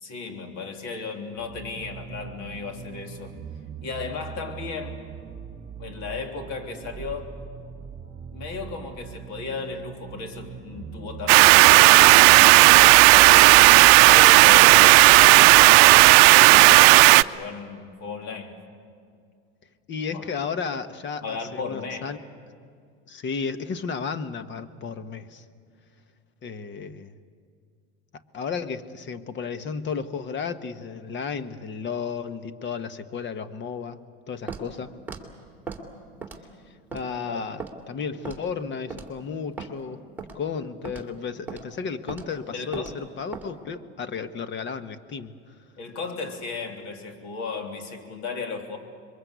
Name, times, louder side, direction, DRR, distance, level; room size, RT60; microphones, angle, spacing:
voice 1, 0.0-3.3 3.8-5.0 5.8-7.3 8.3-13.5 14.1-15.6 16.3-18.6 20.1-20.4 21.2-22.1 37.3-37.4 42.5-42.9 45.8-48.8, left 4 dB, 60° left, 3 dB, 3.5 m, -35 dB
sound 1, 1.4-16.1, right 7 dB, 30° right, 2.5 m, -40 dB
sound 2, 11.3-17.2, right 22 dB, 70° right, 0.6 m, -12 dB
voice 2, 19.9-22.2 23.1-25.4 26.4-27.1 28.3-34.0 34.3-34.9 36.9-40.0 40.3-45.3, left 5 dB, 35° left, 11 dB, 1.3 m, -33 dB
Walk footsteps, 34.5-34.7 35.1-35.2 35.7-35.8 36.2-36.5 36.9-37.1 37.6-37.7 38.3-38.5 38.9-39.1 39.6-39.7 40.2-40.4 40.8-41.1 41.5-41.6 42.1-42.3 42.7-42.9 43.3-43.5, right 4 dB, 5° right, 2.8 m, -36 dB
26.5 x 22.5 x 8.2 m, 2.2 s
supercardioid pair, 110°, 31 cm